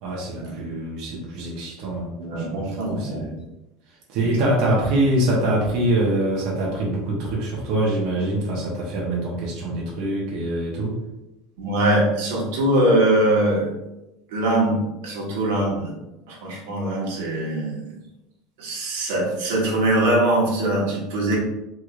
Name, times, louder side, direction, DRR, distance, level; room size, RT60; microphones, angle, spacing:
voice 1, 0.0-3.4 4.1-10.9, right 1 dB, 50° right, -4 dB, 0.8 m, -24 dB
voice 2, 2.2-3.3 4.2-4.3 11.6-13.7 14.3-15.9 16.3-17.9 18.6-21.4, right 1 dB, 90° right, -3 dB, 1.2 m, -22 dB
3.3 x 3.1 x 2.4 m, 0.95 s
cardioid pair, 165°, 0 cm